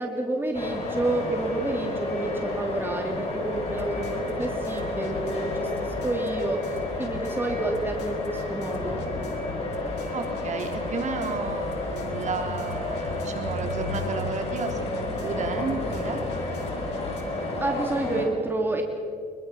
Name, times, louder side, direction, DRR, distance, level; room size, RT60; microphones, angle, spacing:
voice 1, 0.0-9.1 17.6-18.8, right 2 dB, 10° right, 2 dB, 2.7 m, -29 dB
sound 1, 0.5-18.3, left 2 dB, 40° left, 7.0 m, -31 dB
sound 2, 1.5-1.7 2.0-17.2, left 5 dB, 85° left, 3.4 m, -42 dB
voice 2, 10.1-16.2, right 4 dB, 45° right, 3 dB, 3.8 m, -33 dB
24.0 x 23.0 x 6.0 m, 2.2 s
cardioid pair, 110°, 17 cm